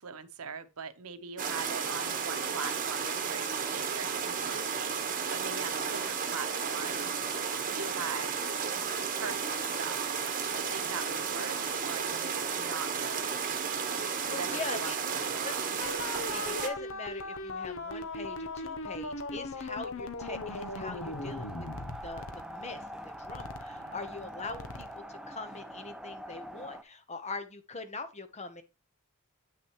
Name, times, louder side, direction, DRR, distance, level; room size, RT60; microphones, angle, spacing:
voice 1, 0.0-7.1 7.7-8.4 9.1-10.0 10.5-13.5 14.2-15.6 23.7-24.0, right 5 dB, 80° right, 0.9 m, -42 dB
sound 1, 1.4-16.7, right 6 dB, 40° right, 1.1 m, -33 dB
voice 2, 14.3-15.0 15.4-15.9 16.3-21.7 22.0-28.6, left 3 dB, 30° left, 0.9 m, -42 dB
sound 2, 15.8-25.0, left 3 dB, 65° left, 0.8 m, -39 dB
sound 3, 20.2-26.8, equal, 5° right, 0.5 m, -44 dB
8.6 x 6.1 x 3.0 m
head